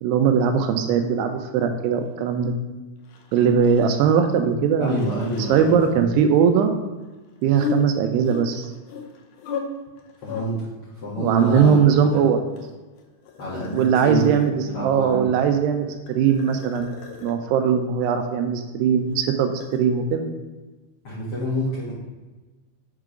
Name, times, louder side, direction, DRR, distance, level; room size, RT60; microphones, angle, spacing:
voice 1, 0.0-2.5 3.3-5.2 5.5-6.7 7.4-8.6 11.2-12.4 13.7-17.0 17.2-20.3, right 7 dB, 85° right, 6 dB, 2.6 m, -20 dB
sound 1, 3.1-4.2 4.4-4.5 4.9-5.7 7.5-9.6 9.9-10.4 11.2-12.1 12.5-14.7 15.8-17.4 19.1-19.8, left 6 dB, 80° left, 1.8 m, -35 dB
voice 2, 4.8-6.1 10.2-10.7 11.0-11.8 12.1-12.3 13.4-14.3 14.7-15.2 21.0-21.9, equal, 50° left, -8 dB, 1.7 m, -27 dB
6.5 x 4.8 x 5.0 m, 1.2 s
omnidirectional pair, 4.8 m